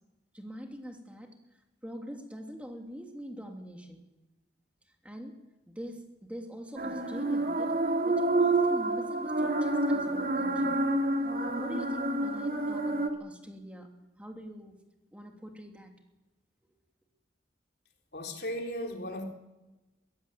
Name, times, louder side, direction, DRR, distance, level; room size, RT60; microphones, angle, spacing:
voice 1, 0.3-1.3 1.8-4.0 5.0-5.4 5.7-7.7 8.0-10.8 11.6-13.9 14.2-14.8 15.1-15.9, equal, 5° right, 2 dB, 2.8 m, -44 dB
sound 1, 6.8-13.1, right 2 dB, 50° right, 2.6 m, -28 dB
voice 2, 18.1-19.2, equal, 65° left, 2 dB, 4.0 m, -36 dB
23.5 x 16.0 x 9.1 m, 1.0 s
head